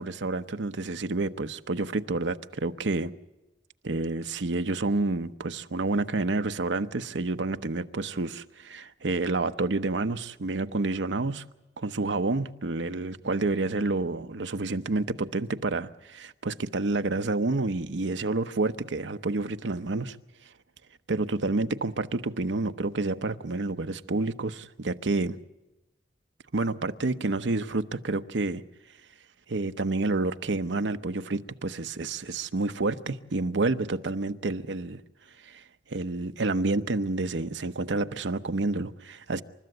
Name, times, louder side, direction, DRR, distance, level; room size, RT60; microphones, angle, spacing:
voice 1, 0.0-3.1 3.8-11.4 11.8-20.2 21.1-25.4 26.5-28.6 29.5-35.0 35.4-35.6 35.9-39.4, right 3 dB, 90° right, 0.8 m, -29 dB
28.5 x 13.5 x 7.9 m
head